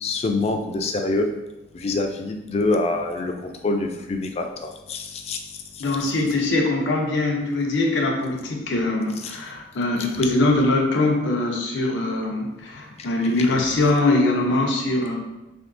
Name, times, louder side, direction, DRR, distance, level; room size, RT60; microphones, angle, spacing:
voice 1, 0.0-1.3 1.7-5.4 9.2-9.4, left 2 dB, 35° left, 4 dB, 0.3 m, -25 dB
voice 2, 5.8-15.2, left 2 dB, 85° left, 0 dB, 0.6 m, -22 dB
3.5 x 2.7 x 2.5 m, 0.99 s
head